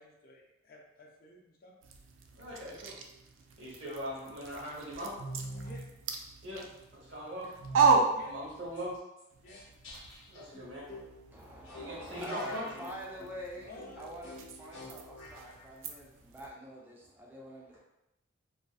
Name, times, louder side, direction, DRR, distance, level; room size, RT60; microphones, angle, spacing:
voice 1, 0.0-1.7 5.6-5.9 8.1-8.3 9.4-9.6 12.1-12.2 13.6-14.1, left 1 dB, 50° left, 0 dB, 0.4 m, -52 dB
sound 1, 1.8-9.0 9.3-16.5, right 4 dB, 85° right, 0.3 m, -35 dB
voice 2, 2.4-3.0 3.6-5.1 6.4-7.5 8.3-8.9 10.3-10.9 11.7-12.6, equal, 70° right, -5 dB, 0.9 m, -40 dB
sound 2, 5.2-5.9 7.6-8.1 8.8-8.9 9.2-9.3 9.5-15.6, equal, 85° left, 0.8 m, -46 dB
voice 3, 11.3-17.8, equal, 10° right, -3 dB, 0.4 m, -45 dB
2.5 x 2.3 x 2.3 m, 0.91 s
head